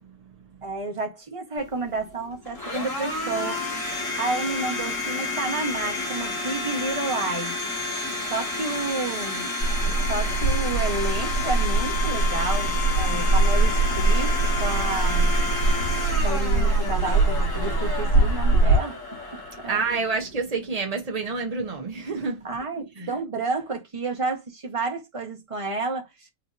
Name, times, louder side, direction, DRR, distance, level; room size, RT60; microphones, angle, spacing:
voice 1, 0.6-3.6 4.2-7.6 8.3-9.6 9.9-15.3 16.2-19.8 22.4-26.3, right 3 dB, 25° right, 0.9 m, -30 dB
Domestic sounds home sounds, 1.6-20.4, left 3 dB, 50° left, 2.3 m, -31 dB
sound 1, 9.6-18.8, right 3 dB, 90° left, 3.4 m, -22 dB
voice 2, 19.7-22.5 23.0-23.2, right 4 dB, 55° right, 0.4 m, -28 dB
5.8 x 2.8 x 2.5 m
omnidirectional pair, 1.7 m